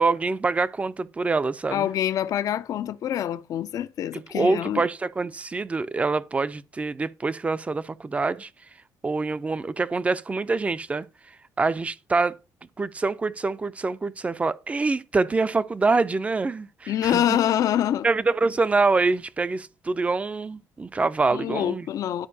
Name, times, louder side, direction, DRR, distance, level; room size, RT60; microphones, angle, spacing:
voice 1, 0.0-1.9 4.1-8.5 9.0-11.1 11.6-12.3 12.8-17.4 18.0-21.9, right 3 dB, 20° right, 0.4 m, -25 dB
voice 2, 1.7-4.8 16.9-18.1 21.3-22.3, left 11 dB, 55° left, 0.4 m, -25 dB
12.0 x 4.6 x 2.7 m
cardioid pair, 125°, 7 cm